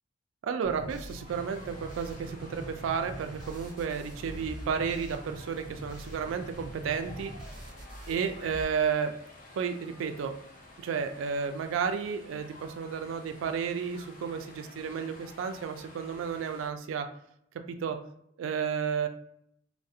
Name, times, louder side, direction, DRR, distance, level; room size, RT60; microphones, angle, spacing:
voice 1, 0.4-7.3 8.1-9.1 9.6-10.3 10.8-17.1 17.8-18.0 18.4-19.1, right 6 dB, 85° right, 7 dB, 0.3 m, -32 dB
sound 1, 0.6-8.6, right 1 dB, 5° right, 0.7 m, -44 dB
sound 2, 1.3-16.7, left 1 dB, 40° left, 0.5 m, -51 dB
2.3 x 2.1 x 2.6 m, 0.71 s
head